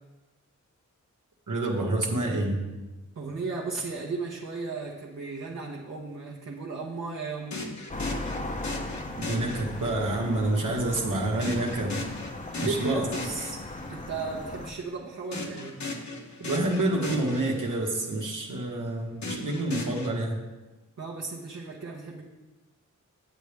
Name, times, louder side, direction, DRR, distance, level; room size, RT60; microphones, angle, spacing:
voice 1, 1.5-2.6 9.3-12.0 12.6-13.0 16.4-20.4, right 2 dB, 75° right, -1 dB, 1.4 m, -28 dB
voice 2, 3.1-7.7 12.6-13.6 13.9-15.8 21.0-22.2, right 4 dB, 55° right, -3 dB, 1.1 m, -35 dB
sound 1, 7.5-10.1 11.4-14.0 15.3-18.0 19.2-20.1, left 2 dB, 65° left, 1.2 m, -37 dB
sound 2, 7.9-14.7, left 2 dB, 25° left, 0.7 m, -37 dB
9.0 x 8.1 x 3.4 m, 1.1 s
wide cardioid pair, 125°, 31 cm